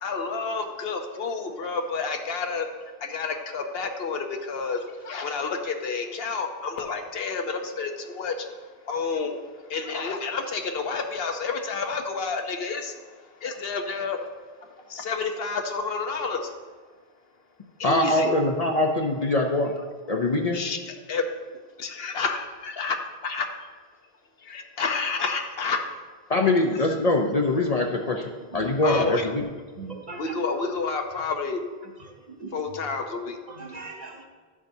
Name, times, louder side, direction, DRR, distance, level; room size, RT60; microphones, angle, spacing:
voice 1, 0.0-2.7 3.0-8.6 8.9-9.4 9.7-13.0 13.4-14.3 14.9-16.5 17.8-18.4 20.5-20.8 21.1-21.2 21.8-23.5 24.5-25.9 28.8-29.3 30.2-31.6 32.5-33.4, left 4 dB, 70° left, 5 dB, 1.0 m, -29 dB
voice 2, 17.8-19.7 20.1-20.7 26.3-29.4, left 2 dB, 45° left, 2 dB, 0.6 m, -23 dB
voice 3, 28.3-28.7 29.7-30.4 32.0-32.8 33.5-34.3, right 3 dB, 45° right, 1 dB, 1.1 m, -40 dB
11.0 x 7.3 x 2.7 m, 1.4 s
omnidirectional pair, 1.0 m